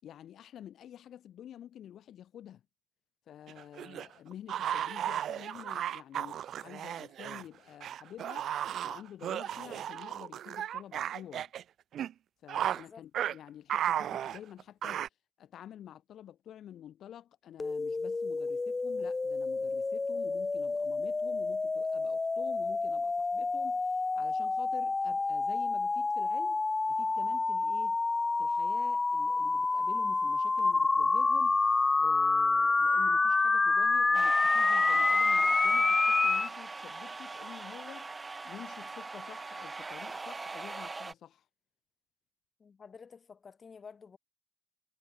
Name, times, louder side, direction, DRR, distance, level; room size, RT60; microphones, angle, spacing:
voice 1, 0.0-2.6 3.3-8.5 8.8-11.5 12.4-15.0 15.4-28.0 28.4-31.6 32.0-41.4, left 10 dB, 70° left, 6.0 m, -49 dB
sound 1, 3.5-7.4 7.8-11.6 11.9-12.1 12.5-12.8 13.1-13.3 13.7-15.1, right 10 dB, 70° right, 0.6 m, -34 dB
voice 2, 12.7-13.0 42.6-44.2, left 5 dB, 40° left, 7.3 m, -51 dB
sound 2, 17.6-36.5, left 3 dB, 25° left, 1.2 m, -28 dB
sound 3, 34.1-41.1, right 3 dB, 25° right, 1.8 m, -41 dB
cardioid pair, 90°, 0 cm